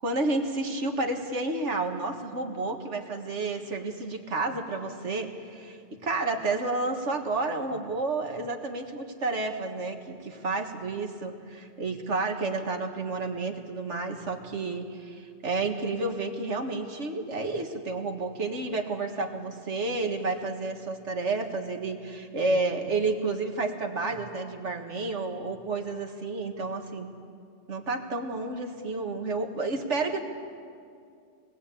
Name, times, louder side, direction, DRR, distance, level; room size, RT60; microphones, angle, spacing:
voice 1, 0.0-27.1 27.7-30.2, right 3 dB, 85° right, 4 dB, 2.1 m, -30 dB
25.0 x 20.0 x 8.6 m, 2.3 s
omnidirectional pair, 1.2 m